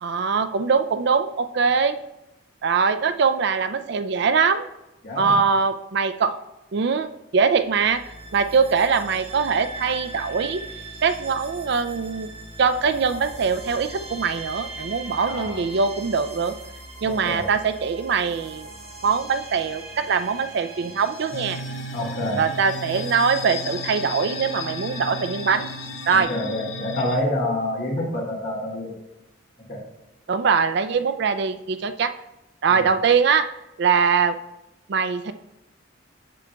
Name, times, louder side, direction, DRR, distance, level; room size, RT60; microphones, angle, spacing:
voice 1, 0.0-2.0 2.6-4.7 5.2-6.3 6.7-8.0 8.3-10.6 11.0-12.3 12.6-16.5 17.0-18.7 19.0-21.6 22.4-25.7 26.1-26.3 30.3-32.1 32.6-33.5 33.8-34.4 34.9-35.3, right 5 dB, 55° right, 10 dB, 0.4 m, -22 dB
voice 2, 5.0-5.4 15.3-15.6 17.0-17.5 21.9-22.4 26.1-28.9 29.7-29.8 32.7-32.9, left 1 dB, 50° left, -3 dB, 1.9 m, -27 dB
sound 1, 7.6-26.2, right 2 dB, 30° right, 1.2 m, -40 dB
sound 2, 21.3-27.2, left 2 dB, 70° left, 0.5 m, -34 dB
7.6 x 7.3 x 2.3 m, 0.94 s
head